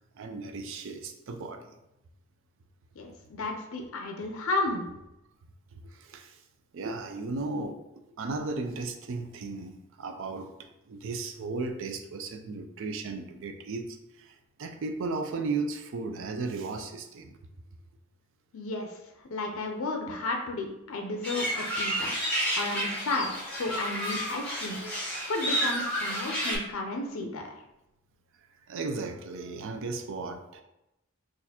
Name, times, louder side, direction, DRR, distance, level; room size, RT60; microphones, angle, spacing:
voice 1, 0.2-1.7 5.7-6.4 6.7-10.5 10.9-17.4 28.7-30.6, right 3 dB, 65° right, 6 dB, 0.4 m, -35 dB
voice 2, 3.0-4.9 18.5-19.0 19.2-22.1 22.5-24.8 25.3-27.5, left 2 dB, 65° left, 2 dB, 0.5 m, -33 dB
sound 1, 21.2-26.6, equal, 5° left, 1.1 m, -31 dB
4.0 x 2.5 x 2.8 m, 0.90 s
head